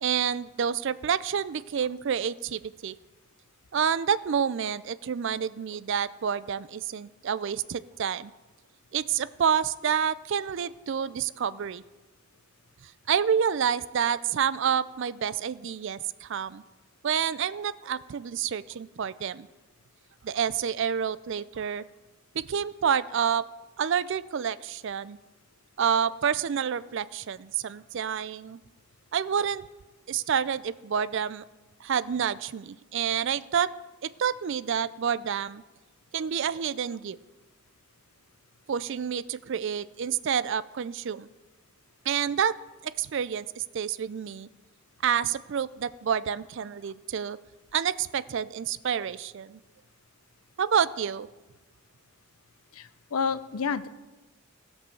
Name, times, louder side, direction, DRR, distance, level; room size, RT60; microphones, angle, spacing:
voice 1, 0.0-2.9 3.7-8.3 8.9-11.8 12.8-16.6 17.0-19.5 20.2-21.8 22.3-23.4 23.8-25.2 25.8-28.6 29.1-29.6 30.1-31.4 31.8-33.7 34.0-35.6 36.1-37.2 38.7-41.3 42.1-42.5 42.8-44.5 45.0-47.4 47.7-49.6 50.6-51.3, right 7 dB, 55° right, 18 dB, 0.4 m, -28 dB
voice 2, 52.7-53.9, left 5 dB, 75° left, 14 dB, 0.6 m, -30 dB
16.0 x 5.4 x 6.9 m, 1.2 s
head